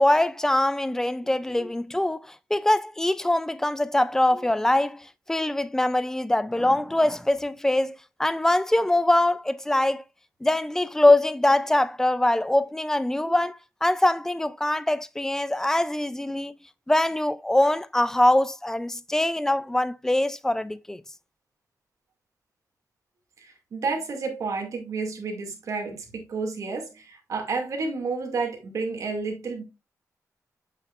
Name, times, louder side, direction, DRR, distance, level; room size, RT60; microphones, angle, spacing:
voice 1, 0.0-10.0 10.4-16.5 16.9-21.0, left 1 dB, 10° left, 0.3 m, -23 dB
voice 2, 23.4-29.6, right 4 dB, 60° right, 2.2 m, -31 dB
8.0 x 5.9 x 2.4 m
wide cardioid pair, 170°, 6 cm